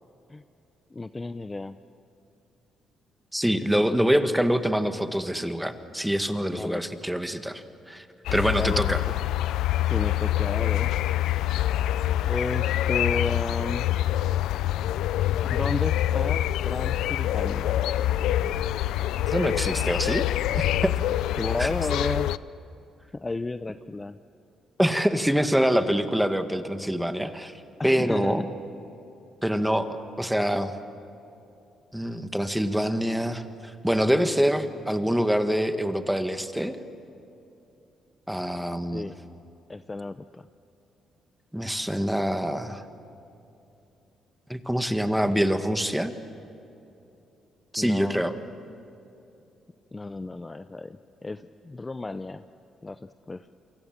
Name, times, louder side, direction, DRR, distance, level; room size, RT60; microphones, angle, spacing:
voice 1, 0.9-1.7 6.5-6.8 8.5-8.8 9.9-11.0 12.3-13.9 15.5-17.8 21.3-22.3 23.1-24.2 27.8-28.5 38.9-39.1 39.7-40.5 47.8-48.2 49.9-52.4 52.8-53.6, left 3 dB, 20° left, 11 dB, 0.6 m, -33 dB
voice 2, 3.3-8.1 8.3-9.0 19.3-20.3 20.5-20.9 21.6-21.7 24.8-28.4 29.4-30.7 31.9-36.8 38.3-39.1 41.5-42.8 44.5-46.1 47.7-48.3, equal, 5° right, 8 dB, 1.7 m, -25 dB
sound 1, 8.3-22.4, left 13 dB, 85° left, 0.5 m, -26 dB
29.5 x 24.0 x 7.4 m, 2.8 s
cardioid pair, 90°, 0 cm